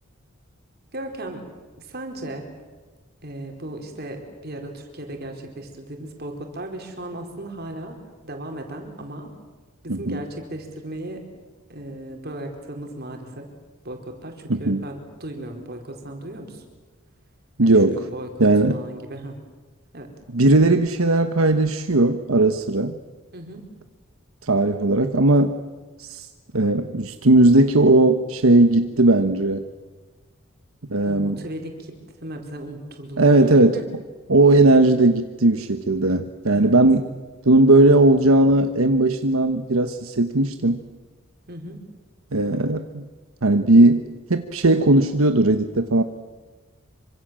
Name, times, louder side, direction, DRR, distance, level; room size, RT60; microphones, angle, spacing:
voice 1, 0.9-1.5 1.7-2.4 3.2-9.3 9.8-11.2 11.7-13.5 13.8-16.6 17.6-19.4 19.9-20.1 23.3-23.6 31.0-31.9 32.2-33.4 33.7-33.8 36.5-36.8 41.5-41.8, right 1 dB, 50° right, 4 dB, 4.6 m, -36 dB
voice 2, 9.9-10.2 14.5-14.8 17.6-18.0 18.4-18.8 20.3-23.0 24.4-25.6 26.0-26.3 26.5-29.6 30.9-31.4 33.2-33.8 34.3-37.0 37.4-40.8 42.3-43.0 43.4-46.0, right 2 dB, 80° right, 8 dB, 1.2 m, -17 dB
26.5 x 25.0 x 7.7 m, 1.3 s
head